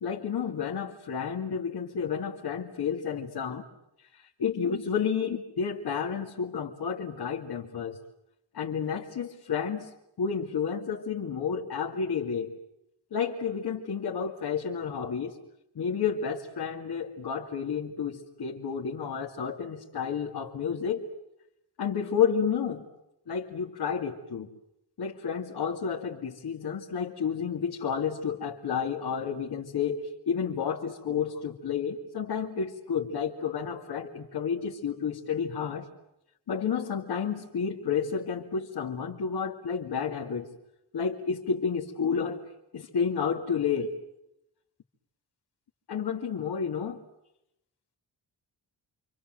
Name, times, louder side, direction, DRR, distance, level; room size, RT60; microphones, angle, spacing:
voice 1, 0.0-3.6 4.1-8.0 8.5-9.9 10.2-12.5 13.1-15.4 15.7-21.0 21.8-22.8 23.3-24.5 25.0-35.9 36.5-40.5 40.9-42.4 42.7-43.9 45.9-47.0, left 6 dB, 65° left, -1 dB, 2.5 m, -31 dB
28.0 x 26.5 x 7.7 m, 0.83 s
wide cardioid pair, 160°, 41 cm